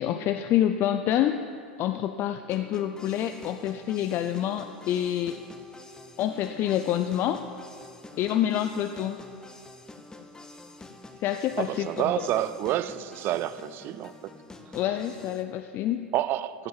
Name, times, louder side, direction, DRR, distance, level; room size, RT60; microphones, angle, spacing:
voice 1, 0.0-1.5 1.8-5.4 6.2-7.4 8.2-9.2 11.2-11.9 12.2-12.3 14.7-16.1, left 11 dB, 45° left, 0.5 m, -27 dB
sound 1, 2.5-15.4, left 2 dB, 10° left, 1.2 m, -47 dB
voice 2, 11.6-14.1 16.1-16.7, right 13 dB, 45° right, 0.6 m, -28 dB
15.5 x 8.5 x 7.3 m
hypercardioid pair, 90°, 5 cm